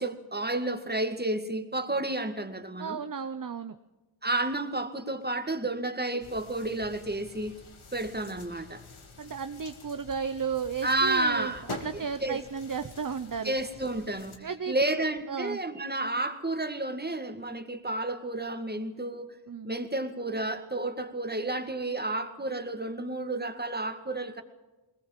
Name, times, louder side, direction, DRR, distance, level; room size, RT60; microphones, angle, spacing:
voice 1, 0.0-3.0 4.2-7.6 7.9-8.8 10.8-11.7 11.9-12.4 13.4-19.4 19.6-24.4, right 2 dB, 20° right, 2.1 m, -31 dB
voice 2, 2.8-3.8 8.9-13.5 14.4-15.6 19.5-19.7, right 6 dB, 40° right, 0.9 m, -34 dB
sound 1, 6.2-14.4, left 3 dB, 85° left, 2.5 m, -47 dB
21.0 x 20.0 x 7.5 m
wide cardioid pair, 60°, 48 cm